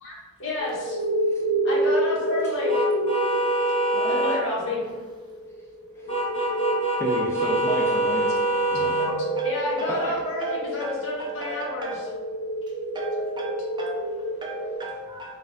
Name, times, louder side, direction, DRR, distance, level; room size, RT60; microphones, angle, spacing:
voice 1, 0.0-1.0 1.6-2.8 4.1-4.8 6.4-6.5 9.4-12.1, equal, 60° left, -4 dB, 1.2 m, -30 dB
sound 1, 0.6-14.8, right 1 dB, 90° left, 1.0 m, -29 dB
sound 2, 2.7-4.4 6.1-9.1, right 1 dB, 25° left, 1.2 m, -24 dB
voice 2, 3.9-4.4 8.7-10.0 10.4-12.2 12.9-15.4, equal, 20° right, -2 dB, 0.7 m, -36 dB
voice 3, 6.9-8.3 8.7-9.0 9.9-10.2, equal, 10° left, -4 dB, 0.4 m, -32 dB
4.1 x 2.6 x 3.6 m, 1.3 s
head